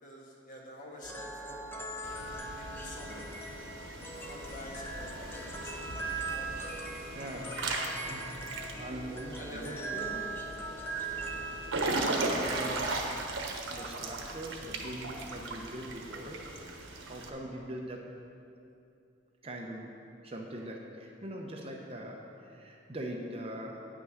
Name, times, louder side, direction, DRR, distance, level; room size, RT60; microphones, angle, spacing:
voice 1, 0.0-1.9 2.5-3.5 4.0-6.0 6.3-7.6 9.4-10.4, equal, 45° left, -3 dB, 1.6 m, -48 dB
sound 1, 1.0-12.6, right 2 dB, 10° left, 0.6 m, -40 dB
Water / Splash splatter / Drip, 2.0-17.3, right 2 dB, 85° right, 1.1 m, -38 dB
voice 2, 7.1-7.5 8.1-10.2 11.3-12.9 13.7-16.4 17.1-18.0 19.4-19.9 20.2-23.8, right 1 dB, 30° right, 0 dB, 0.8 m, -42 dB
9.3 x 6.1 x 6.3 m, 2.6 s
head